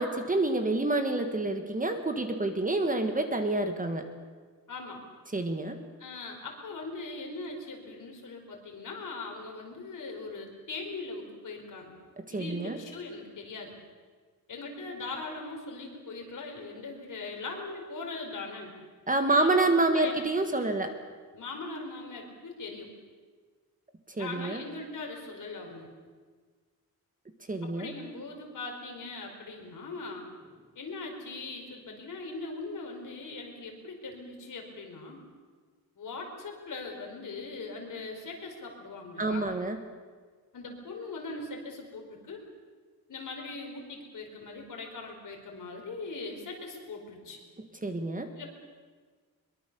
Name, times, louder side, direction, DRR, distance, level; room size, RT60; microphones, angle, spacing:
voice 1, 0.0-4.1 5.3-5.8 12.3-12.8 19.1-20.9 24.1-24.6 27.5-27.9 39.2-39.8 47.8-48.3, right 2 dB, 20° right, 6 dB, 1.6 m, -28 dB
voice 2, 4.7-5.0 6.0-11.9 12.3-13.8 14.5-18.7 19.3-20.2 21.3-22.9 24.2-25.9 27.6-30.3 30.7-35.2 36.0-39.5 40.5-42.4 43.1-47.4 48.4-48.6, left 3 dB, 55° left, 1 dB, 4.8 m, -40 dB
23.0 x 22.5 x 6.9 m, 1.5 s
wide cardioid pair, 170°, 37 cm